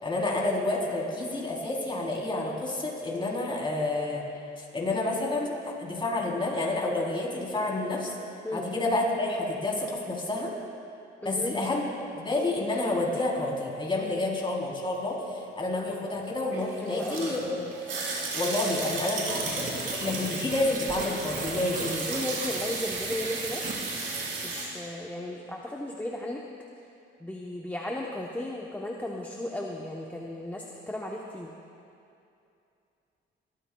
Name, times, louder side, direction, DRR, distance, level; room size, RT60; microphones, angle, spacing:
voice 1, 0.0-4.2 4.6-8.1 8.5-10.5 11.3-11.9 12.1-17.7 18.3-22.1, left 2 dB, 25° left, -3 dB, 3.5 m, -29 dB
voice 2, 11.2-11.6 16.8-17.3 22.1-23.6 24.4-26.4 27.2-31.5, left 1 dB, 10° left, -2 dB, 0.9 m, -35 dB
sound 1, 16.5-24.7, right 3 dB, 80° right, 3.5 m, -34 dB
sound 2, 19.3-24.3, right 2 dB, 40° right, 2.6 m, -38 dB
24.0 x 13.5 x 2.3 m, 2.6 s
cardioid pair, 90°, 20 cm